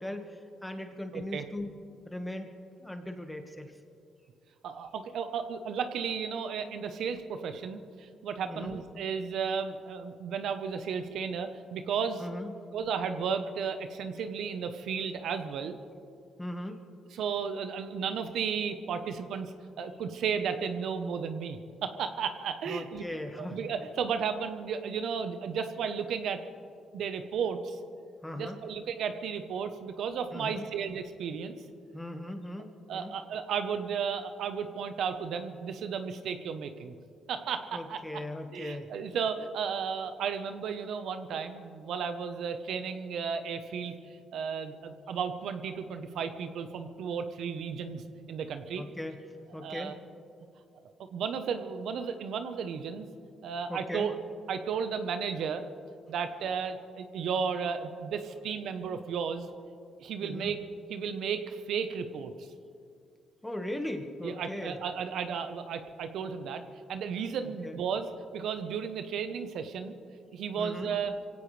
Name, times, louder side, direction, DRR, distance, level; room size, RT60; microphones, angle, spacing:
voice 1, 0.0-1.7 2.0-2.5 2.8-3.7 8.5-8.8 12.2-12.5 16.4-16.8 22.7-23.7 28.2-28.6 30.3-30.7 31.9-33.1 37.7-38.9 48.8-49.2 49.5-50.0 53.7-54.1 60.2-60.5 63.4-64.8 67.6-67.8 70.6-70.9, left 1 dB, 10° left, 4 dB, 1.7 m, -38 dB
voice 2, 1.1-1.4 4.6-12.2 12.7-15.8 17.1-23.0 23.4-26.4 26.9-27.8 28.4-31.6 32.9-36.9 37.3-38.0 38.5-43.9 44.3-48.0 48.3-48.8 49.6-49.9 51.1-53.1 53.4-54.2 54.5-55.6 56.1-59.5 60.0-60.6 60.9-62.5 64.2-66.6 66.9-68.1 68.3-69.9 70.3-71.1, right 6 dB, 75° right, 8 dB, 1.0 m, -34 dB
24.0 x 17.0 x 3.4 m, 2.4 s
cardioid pair, 90°, 0 cm